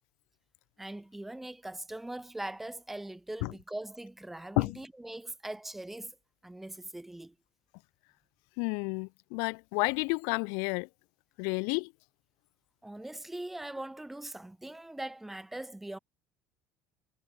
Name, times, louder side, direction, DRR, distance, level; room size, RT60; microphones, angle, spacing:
voice 1, 0.8-6.1 6.4-7.3 12.8-16.0, right 1 dB, 5° right, 1.2 m, -41 dB
voice 2, 8.6-10.9 11.4-11.9, left 37 dB, 75° left, 0.7 m, -30 dB
cardioid pair, 165°, 5 cm